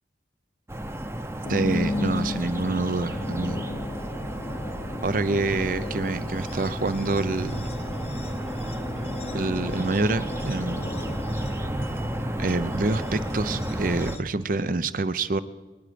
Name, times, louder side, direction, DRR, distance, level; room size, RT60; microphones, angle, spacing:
sound 1, 0.7-14.2, right 1 dB, 15° right, 0.7 m, -32 dB
sound 2, 1.4-14.2, left 2 dB, 35° left, 0.6 m, -36 dB
voice 1, 1.5-3.6 5.0-7.6 9.3-10.9 12.4-15.4, right 3 dB, 50° right, 15 dB, 0.6 m, -27 dB
24.0 x 10.0 x 5.1 m, 1.2 s
head